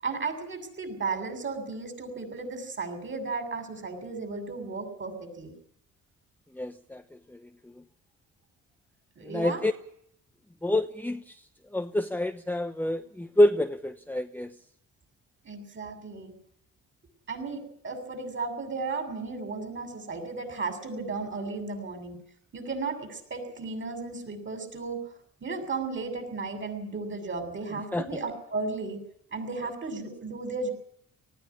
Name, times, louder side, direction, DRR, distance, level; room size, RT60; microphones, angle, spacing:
voice 1, 0.0-5.5 9.2-9.6 15.4-16.3 17.3-22.2 22.5-25.0 25.4-29.0 29.3-30.7, right 4 dB, 40° right, 6 dB, 7.4 m, -34 dB
voice 2, 6.6-7.0 9.2-9.7 10.6-11.2 11.7-14.5 27.9-28.1, left 1 dB, 5° left, 7 dB, 1.0 m, -26 dB
19.0 x 15.5 x 10.0 m, 0.68 s
cardioid pair, 90°, 30 cm